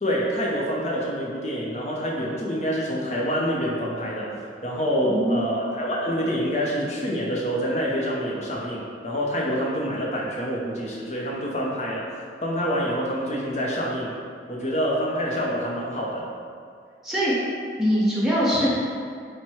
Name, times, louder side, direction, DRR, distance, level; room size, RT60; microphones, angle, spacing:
voice 1, 0.0-12.0 12.4-14.1 14.5-16.3, equal, 35° left, -3 dB, 0.6 m, -26 dB
voice 2, 5.0-5.4 17.0-17.4 17.8-18.8, equal, ahead, -10 dB, 1.0 m, -22 dB
4.6 x 2.2 x 4.3 m, 2.3 s
head